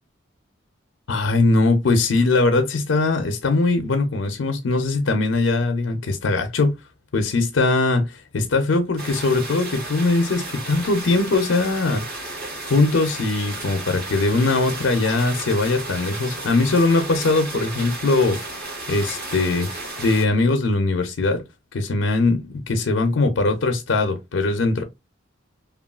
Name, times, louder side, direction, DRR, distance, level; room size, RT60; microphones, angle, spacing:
voice 1, 1.1-6.8 7.1-12.3 12.6-18.4 18.9-19.7 20.0-21.5 21.7-24.8, left 3 dB, 90° left, 0.5 m, -21 dB
sound 1, 9.0-20.2, right 2 dB, 50° right, 1.5 m, -33 dB
3.0 x 2.3 x 2.3 m
head